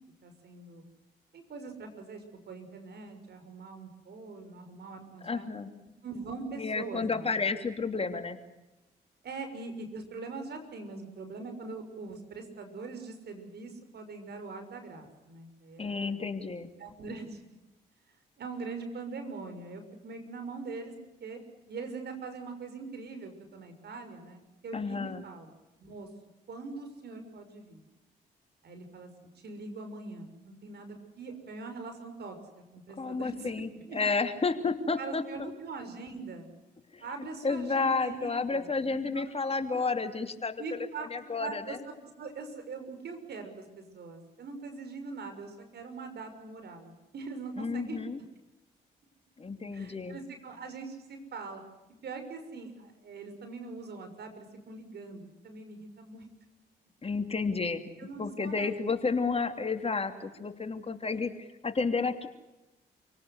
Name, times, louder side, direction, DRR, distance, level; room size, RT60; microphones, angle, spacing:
voice 1, 0.2-0.8 1.3-5.5 6.0-7.5 9.2-16.2 16.8-17.4 18.4-20.9 21.2-21.4 21.7-25.5 25.8-26.1 26.5-27.8 28.6-33.5 33.8-34.0 35.0-36.5 37.0-39.8 40.6-41.1 41.4-41.9 42.2-48.2 49.7-51.6 52.0-56.2 58.0-58.7 61.1-61.2, right 4 dB, 65° right, 7 dB, 6.2 m, -42 dB
voice 2, 5.2-5.7 6.6-8.4 15.8-16.7 24.7-25.2 33.0-35.5 36.9-37.0 37.4-41.8 47.6-48.2 49.4-50.2 57.0-57.9 58.2-62.3, left 4 dB, 30° left, 7 dB, 2.9 m, -31 dB
28.0 x 18.0 x 8.1 m, 1.0 s
supercardioid pair, 60°, 19 cm